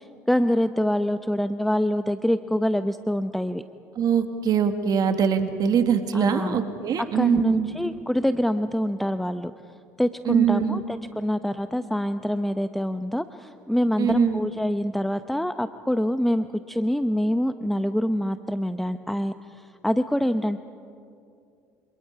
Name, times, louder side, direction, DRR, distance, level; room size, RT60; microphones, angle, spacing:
voice 1, 0.0-3.6 6.1-6.6 7.0-9.5 10.0-20.6, equal, ahead, 10 dB, 0.8 m, -25 dB
voice 2, 4.0-7.7 10.3-10.8 14.0-14.4, right 7 dB, 50° right, 8 dB, 2.0 m, -23 dB
28.0 x 27.0 x 4.8 m, 2.5 s
hypercardioid pair, 65°, 9 cm